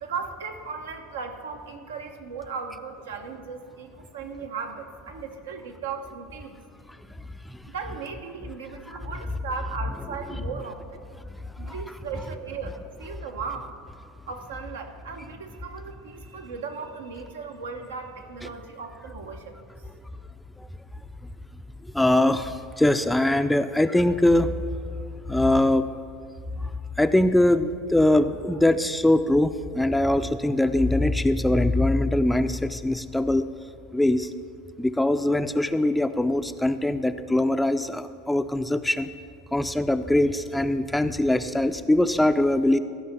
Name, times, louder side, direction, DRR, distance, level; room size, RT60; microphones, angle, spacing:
voice 1, 0.0-6.6 7.7-11.1 11.6-13.7 14.3-19.6, right 5 dB, 85° right, 5 dB, 1.0 m, -37 dB
voice 2, 21.9-24.5 25.3-25.9 27.0-33.5 33.9-34.3 34.8-39.1 39.5-42.8, left 1 dB, 5° left, 9 dB, 0.4 m, -22 dB
14.5 x 5.5 x 7.2 m, 2.3 s
hypercardioid pair, 95°, 0 cm